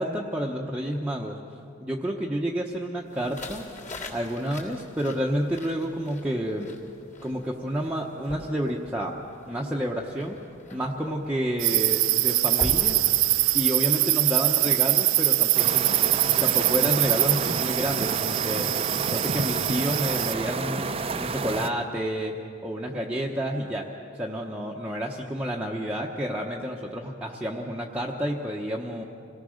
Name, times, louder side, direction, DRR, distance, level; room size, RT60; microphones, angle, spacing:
voice 1, 0.0-1.4 1.8-3.7 4.1-6.7 7.2-9.1 9.5-10.4 10.7-13.0 13.5-15.8 16.4-20.9 21.2-22.3 22.6-23.9 24.1-29.0, equal, 5° right, -2 dB, 0.9 m, -29 dB
sound 1, 3.1-13.8, left 1 dB, 35° left, 3.4 m, -42 dB
sound 2, 11.6-20.3, right 17 dB, 85° right, 0.5 m, -23 dB
sound 3, 15.5-21.7, right 4 dB, 30° right, 0.6 m, -30 dB
26.5 x 18.0 x 6.4 m, 2.6 s
head